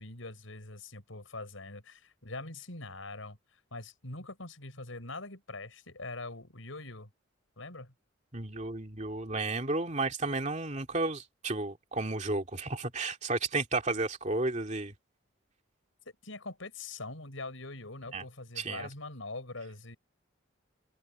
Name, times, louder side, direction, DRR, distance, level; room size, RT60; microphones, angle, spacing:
voice 1, 0.0-7.1 7.6-7.9 16.2-20.0, left 2 dB, 85° left, 6.1 m, -43 dB
voice 2, 8.3-14.9 18.1-18.2 18.6-18.9, right 2 dB, 35° right, 2.7 m, -32 dB
open air
head